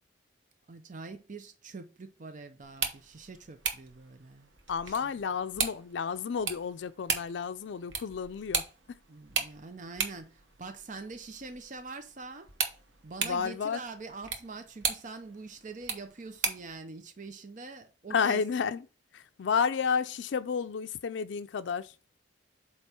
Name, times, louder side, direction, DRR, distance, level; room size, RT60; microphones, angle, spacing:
voice 1, 0.7-4.5 4.9-5.1 9.1-12.5 13.0-18.7, right 3 dB, 45° right, 0.6 m, -44 dB
sound 1, 2.6-16.8, right 6 dB, 85° right, 1.1 m, -37 dB
voice 2, 4.7-8.6 13.2-13.8 18.1-18.8 19.1-21.9, left 6 dB, 75° left, 0.4 m, -31 dB
8.0 x 3.0 x 4.3 m
head